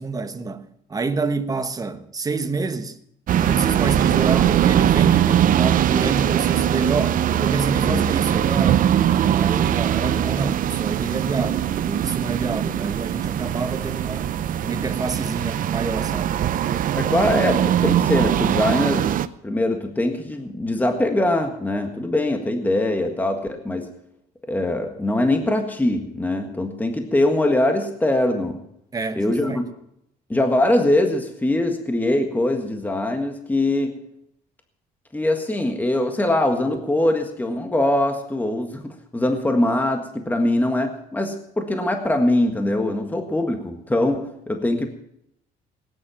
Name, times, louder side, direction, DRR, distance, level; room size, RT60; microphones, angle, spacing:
voice 1, 0.0-3.0 3.4-8.9 9.3-14.3 14.6-16.4 28.9-29.7, right 3 dB, 20° right, 1.1 m, -28 dB
sound 1, 3.3-19.3, right 10 dB, 55° right, 0.7 m, -21 dB
voice 2, 16.9-19.1 19.4-23.9 24.5-28.6 29.2-29.7 30.3-34.0 35.1-44.9, left 1 dB, 10° left, 1.7 m, -22 dB
18.0 x 10.0 x 5.7 m
cardioid pair, 110°, 17 cm